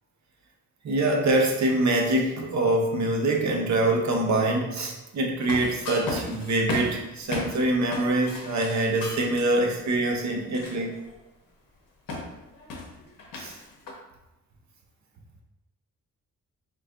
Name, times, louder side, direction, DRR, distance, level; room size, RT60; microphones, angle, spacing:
voice 1, 0.8-10.9 13.4-13.5, right 2 dB, 55° right, 1 dB, 0.7 m, -24 dB
sound 1, 5.4-7.6 7.9-9.4 10.1-11.1 12.1-13.9, left 3 dB, 75° left, 0.7 m, -35 dB
3.8 x 2.6 x 2.4 m, 0.96 s
cardioid pair, 100°, 34 cm